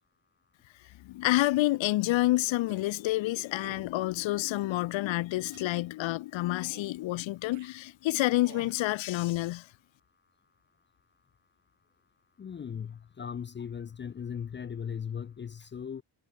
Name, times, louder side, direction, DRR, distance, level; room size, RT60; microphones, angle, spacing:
voice 1, 0.8-9.7, left 17 dB, 85° left, 0.7 m, -28 dB
sound 1, 2.7-3.0 3.5-3.9 4.4-5.0 5.5-5.8 6.6-7.0 7.5-7.7 8.3-8.8, right 11 dB, 45° right, 0.6 m, -53 dB
voice 2, 12.4-16.0, left 7 dB, 25° left, 0.4 m, -38 dB
wide cardioid pair, 170°, 44 cm